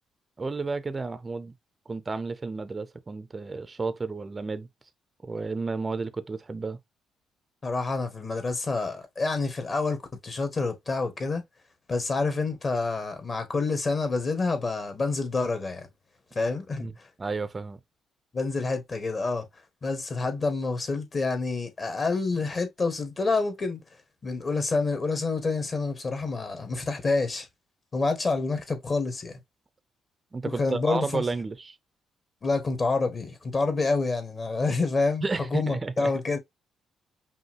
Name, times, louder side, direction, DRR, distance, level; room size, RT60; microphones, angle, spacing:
voice 1, 0.4-1.5 1.9-4.7 5.2-6.8 16.8-16.9 17.2-17.8 30.3-31.8 35.2-36.1, right 3 dB, 25° right, 0.5 m, -32 dB
voice 2, 7.6-10.0 10.2-11.4 11.9-15.9 16.3-16.9 18.3-19.4 19.8-23.8 24.2-27.5 27.9-29.4 30.4-31.2 32.4-35.2 35.5-36.4, left 3 dB, 35° left, 1.6 m, -28 dB
5.4 x 2.7 x 3.0 m
cardioid pair, 90°, 0 cm